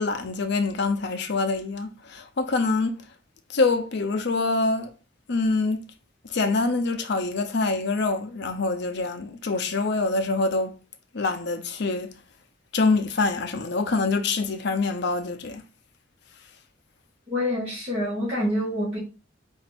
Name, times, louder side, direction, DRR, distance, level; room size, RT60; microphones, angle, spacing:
voice 1, 0.0-3.0 3.5-4.9 5.3-5.8 6.3-10.8 11.1-12.1 12.7-15.6, left 3 dB, 65° left, 0.7 m, -25 dB
voice 2, 17.3-19.0, left 1 dB, 30° right, 1.8 m, -26 dB
4.3 x 2.7 x 4.2 m
head